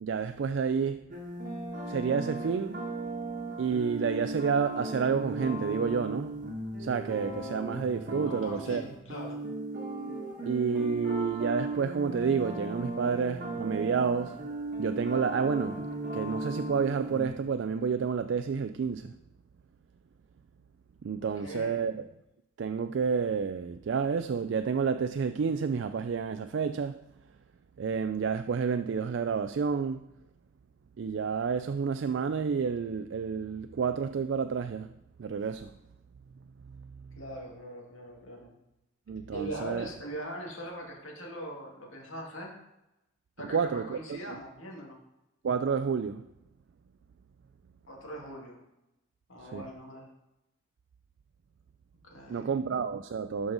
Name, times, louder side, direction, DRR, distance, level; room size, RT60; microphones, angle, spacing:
voice 1, 0.0-1.1 1.8-2.8 3.6-6.3 6.8-8.8 10.5-14.4 14.8-19.1 21.0-22.0 22.6-27.0 27.8-30.0 31.0-34.9 35.2-35.7 39.1-39.9 43.5-44.4 45.4-46.3 49.4-49.6 52.3-53.5, right 6 dB, 65° right, 0.3 m, -30 dB
sound 1, 1.1-17.3, right 2 dB, 40° right, 1.4 m, -37 dB
voice 2, 8.3-9.4 21.4-21.9 37.1-38.6 39.3-42.5 43.4-45.0 47.9-48.6 49.3-50.1 52.0-52.5, right 1 dB, 85° left, 2.1 m, -41 dB
12.0 x 5.2 x 4.0 m
head